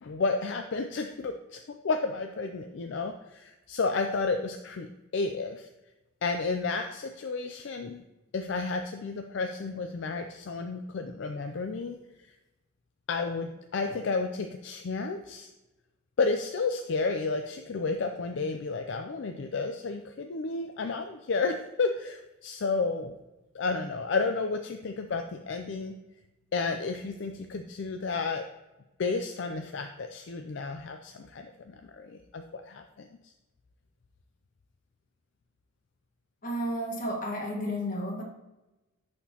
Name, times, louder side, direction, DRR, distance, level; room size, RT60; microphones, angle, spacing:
voice 1, 0.0-5.7 6.2-8.0 8.3-12.0 13.1-15.5 16.2-23.2 23.5-25.9 26.5-28.5 29.0-33.1, left 4 dB, 60° left, 6 dB, 0.4 m, -32 dB
voice 2, 36.4-38.2, equal, 40° left, 0 dB, 1.4 m, -32 dB
11.0 x 4.3 x 2.9 m, 1.0 s
head